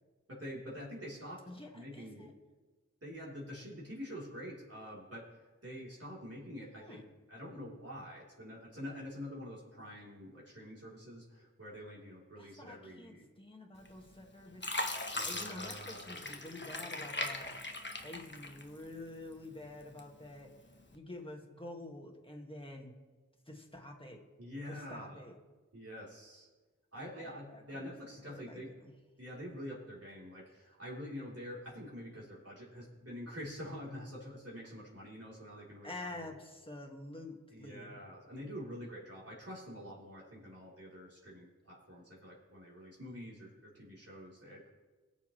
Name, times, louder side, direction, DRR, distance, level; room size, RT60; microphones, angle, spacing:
voice 1, 0.3-1.4 1.7-2.3 3.0-5.3 5.6-7.0 7.3-13.3 15.1-16.2 24.4-25.3 25.7-26.5 26.9-28.7 29.2-35.9 36.2-36.3 37.5-44.7, equal, 50° right, -6 dB, 3.7 m, -46 dB
voice 2, 1.5-2.3 6.8-7.0 12.4-17.6 18.0-20.5 20.9-23.0 23.5-24.2 24.7-25.4 26.9-27.9 28.3-28.9 35.8-38.0, left 2 dB, 15° left, 1 dB, 2.0 m, -48 dB
Fill (with liquid), 13.9-14.2 14.6-19.0 19.4-20.3 20.8-21.0, left 2 dB, 35° left, 1.1 m, -39 dB
21.0 x 7.3 x 3.3 m, 1.3 s
wide cardioid pair, 40°, 31 cm